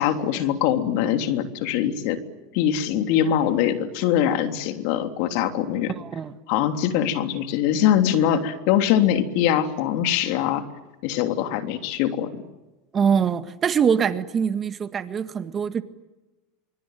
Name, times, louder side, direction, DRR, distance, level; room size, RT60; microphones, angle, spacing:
voice 1, 0.0-2.2 2.5-5.9 6.5-10.6 11.0-12.3, left 10 dB, 65° left, 7 dB, 3.2 m, -22 dB
voice 2, 5.9-6.3 12.9-15.8, right 7 dB, 30° right, 11 dB, 1.8 m, -23 dB
25.0 x 25.0 x 9.3 m, 1.1 s
supercardioid pair, 115°, 0 cm